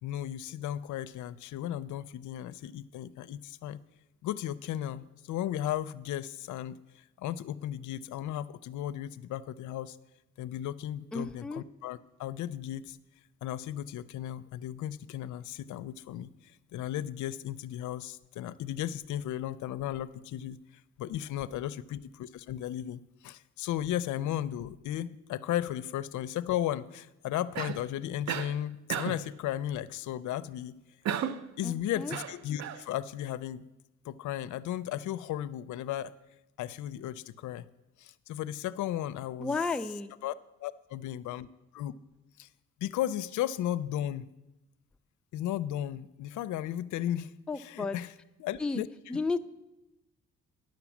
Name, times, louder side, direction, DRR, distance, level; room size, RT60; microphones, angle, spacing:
voice 1, 0.0-3.8 4.2-10.0 10.4-13.0 13.4-16.3 16.7-20.6 21.0-30.7 31.6-33.6 34.0-36.1 36.6-37.6 38.0-40.3 40.6-41.5 41.7-41.9 42.4-42.5 42.8-44.2 45.3-48.1 48.4-49.2, left 12 dB, 75° left, 14 dB, 0.5 m, -35 dB
voice 2, 11.1-11.6 31.6-32.1 39.4-40.1 47.5-48.0 48.6-48.8 49.1-49.4, left 3 dB, 5° left, 8 dB, 0.3 m, -33 dB
Cough, 27.5-27.9 28.3-28.6 28.9-29.3 31.0-31.5 32.1-32.8, right 8 dB, 65° right, 0.6 m, -33 dB
10.5 x 6.0 x 7.1 m, 0.95 s
cardioid pair, 90°, 30 cm